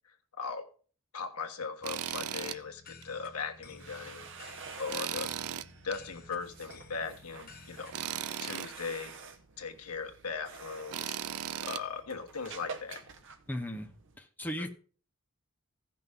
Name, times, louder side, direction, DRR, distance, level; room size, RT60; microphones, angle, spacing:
voice 1, 0.4-0.7 1.1-4.3 4.6-5.3 5.8-9.1 9.6-11.2 11.6-13.0 14.6-14.7, left 5 dB, 90° left, 1.4 m, -39 dB
sound 1, 1.8-8.3, left 4 dB, 40° left, 0.9 m, -54 dB
Tools, 1.8-2.6 3.0-3.1 4.9-6.0 7.9-8.7 10.9-11.8, right 10 dB, 80° right, 0.4 m, -36 dB
sound 2, 3.5-14.2, right 5 dB, 55° right, 1.0 m, -49 dB
voice 2, 13.5-13.9 14.2-14.7, equal, 10° left, 0.9 m, -36 dB
15.5 x 5.9 x 3.6 m
head